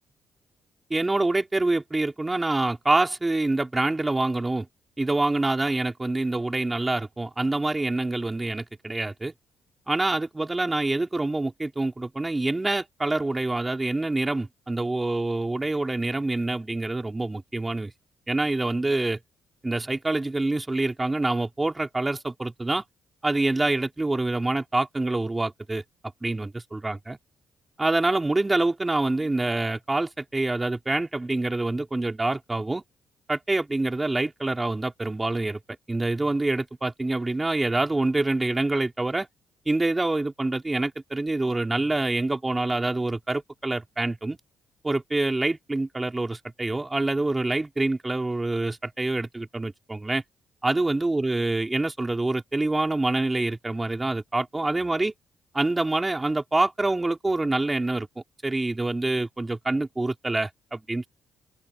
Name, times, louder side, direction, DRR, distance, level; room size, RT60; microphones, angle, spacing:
voice 1, 0.9-4.7 5.0-9.3 9.9-17.9 18.3-19.2 19.6-22.8 23.2-25.8 26.2-27.2 27.8-32.8 33.3-35.6 35.9-39.3 39.7-44.4 44.8-50.2 50.6-55.1 55.5-58.1 58.4-61.1, right 2 dB, 15° right, 4.3 m, -26 dB
open air
cardioid pair, 90°, 0 cm